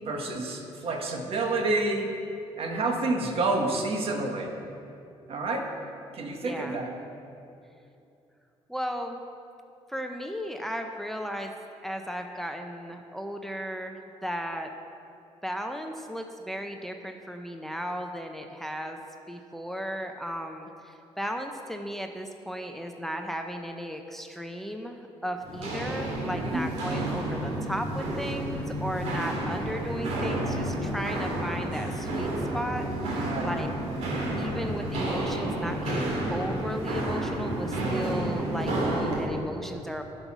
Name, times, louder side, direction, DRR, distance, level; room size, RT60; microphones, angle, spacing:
voice 1, 0.0-2.1 2.6-4.5 5.3-5.7 6.1-6.9 26.3-26.6 33.1-33.5, right 2 dB, 60° right, 2 dB, 1.4 m, -29 dB
voice 2, 6.4-6.8 8.7-9.2 9.9-11.5 11.8-14.7 15.4-19.0 19.3-33.7 34.4-40.0, equal, 5° left, 4 dB, 0.6 m, -35 dB
Walk footsteps, 25.4-39.2, right 1 dB, 80° right, 2.5 m, -30 dB
11.0 x 5.4 x 6.0 m, 2.6 s
cardioid pair, 95°, 11 cm